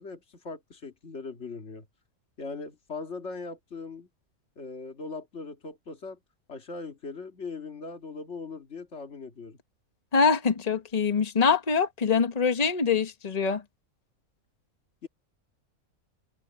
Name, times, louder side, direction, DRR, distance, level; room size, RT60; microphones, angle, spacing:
voice 1, 0.0-1.9 2.4-4.1 4.6-6.2 6.5-9.6 15.0-15.1, left 4 dB, 50° left, 2.5 m, -40 dB
voice 2, 10.1-13.6, left 5 dB, 30° left, 1.3 m, -24 dB
open air
omnidirectional pair, 1.5 m